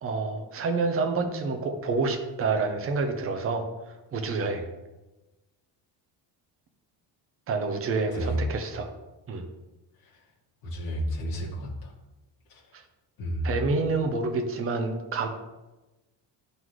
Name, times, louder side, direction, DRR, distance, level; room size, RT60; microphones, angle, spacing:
voice 1, 0.0-4.7 7.5-8.9 9.3-9.4 13.4-15.3, right 3 dB, 30° right, 4 dB, 0.7 m, -28 dB
voice 2, 10.6-11.9 13.2-13.5, right 1 dB, 50° left, -4 dB, 1.7 m, -31 dB
11.0 x 4.0 x 3.1 m, 1.1 s
cardioid pair, 170°, 46 cm